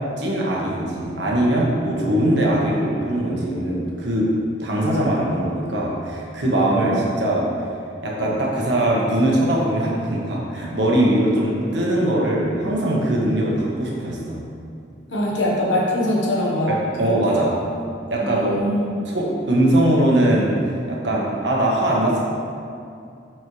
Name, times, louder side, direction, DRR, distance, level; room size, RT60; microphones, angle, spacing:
voice 1, 0.2-4.3 4.6-7.5 8.0-14.4 16.7-17.5 18.1-18.6 19.1-20.6 20.9-22.2, right 1 dB, 70° right, -4 dB, 1.4 m, -21 dB
voice 2, 15.1-17.4 18.2-19.0, left 1 dB, 75° left, -4 dB, 1.3 m, -23 dB
9.1 x 4.5 x 3.3 m, 2.5 s
head